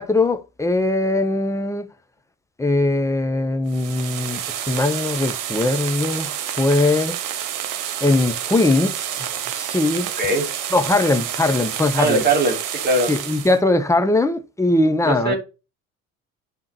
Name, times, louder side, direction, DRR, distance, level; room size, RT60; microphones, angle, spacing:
voice 1, 0.0-1.9 2.6-7.2 8.0-10.1 10.7-12.2 13.1-15.3, left 2 dB, 5° left, 0.8 m, -20 dB
sound 1, 3.7-13.6, right 10 dB, 50° right, 0.9 m, -29 dB
voice 2, 12.0-13.1 15.0-15.4, right 2 dB, 25° right, 2.9 m, -20 dB
9.6 x 3.6 x 2.8 m
figure-of-eight pair, 55°, 41 cm